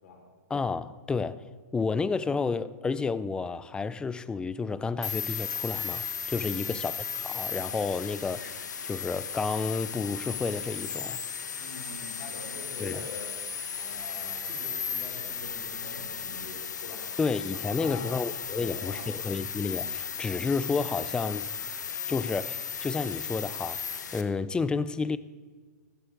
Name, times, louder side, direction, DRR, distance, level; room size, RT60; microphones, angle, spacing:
voice 1, 0.5-1.5 1.7-11.2 12.8-13.0 17.2-21.5 22.1-25.2, left 4 dB, 10° left, 0.4 m, -31 dB
sound 1, 5.0-24.2, left 7 dB, 85° left, 1.2 m, -35 dB
voice 2, 11.5-13.3 13.7-17.1 17.5-18.2 18.5-19.1, left 3 dB, 65° left, 4.6 m, -44 dB
15.5 x 13.5 x 3.8 m
hypercardioid pair, 135°, 9 cm